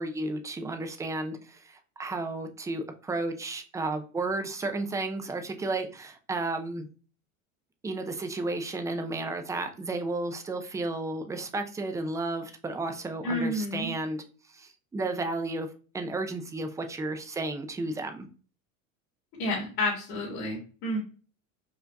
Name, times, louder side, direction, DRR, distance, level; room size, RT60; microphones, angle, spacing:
voice 1, 0.0-6.9 7.8-14.2 14.5-15.7 15.9-18.3, right 2 dB, 10° right, 6 dB, 0.4 m, -33 dB
voice 2, 13.2-13.9 19.4-21.0, left 1 dB, 60° left, -5 dB, 1.7 m, -30 dB
4.7 x 2.5 x 2.2 m, 0.38 s
hypercardioid pair, 95°, 41 cm